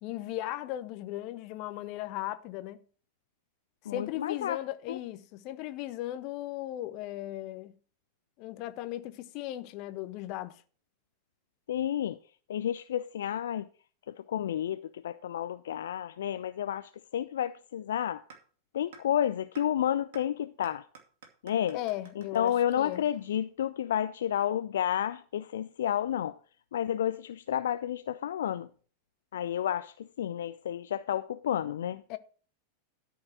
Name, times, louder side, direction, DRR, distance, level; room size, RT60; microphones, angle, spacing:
voice 1, 0.0-2.8 3.9-7.7 8.4-10.6 21.7-23.0 32.1-32.2, left 14 dB, 40° left, 0.8 m, -37 dB
voice 2, 3.9-4.6 4.9-5.0 11.7-12.2 12.5-13.7 14.1-18.2 18.7-20.9 21.4-21.8 22.2-26.4 26.7-28.7 29.3-32.0, left 10 dB, 60° left, 0.4 m, -31 dB
sound 1, 18.3-18.4 18.9-19.0 19.5-19.6 20.1-20.2 20.6-23.6, right 5 dB, 55° right, 2.3 m, -52 dB
13.0 x 4.6 x 6.3 m
figure-of-eight pair, 90°, 0 cm